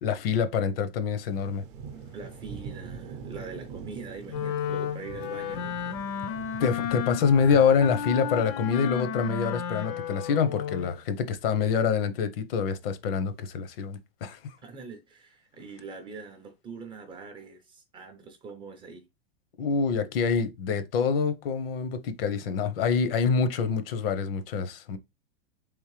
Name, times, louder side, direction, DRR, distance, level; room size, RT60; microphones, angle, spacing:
voice 1, 0.0-1.6 6.6-14.4 19.6-25.0, left 6 dB, 70° left, 0.8 m, -26 dB
sound 1, 1.3-8.1, right 6 dB, 55° right, 0.7 m, -43 dB
voice 2, 2.1-5.8 14.6-19.1, right 4 dB, 15° right, 0.4 m, -43 dB
Wind instrument woodwind instrument, 4.3-11.0, left 8 dB, 40° left, 0.4 m, -33 dB
3.6 x 3.0 x 3.1 m
supercardioid pair, 150°, 30 cm